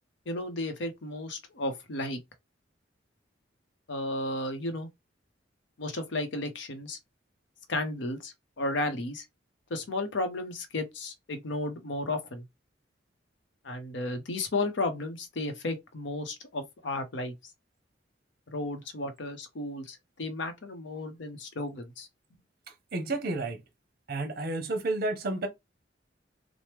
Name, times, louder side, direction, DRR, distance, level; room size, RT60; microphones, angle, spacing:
voice 1, 0.3-2.2 3.9-4.9 5.8-7.0 7.7-9.2 9.7-12.4 13.6-17.3 18.5-22.1, left 2 dB, 70° left, 0.7 m, -33 dB
voice 2, 22.9-23.6 24.1-25.5, right 2 dB, 55° right, 0.7 m, -31 dB
3.2 x 2.0 x 3.0 m
head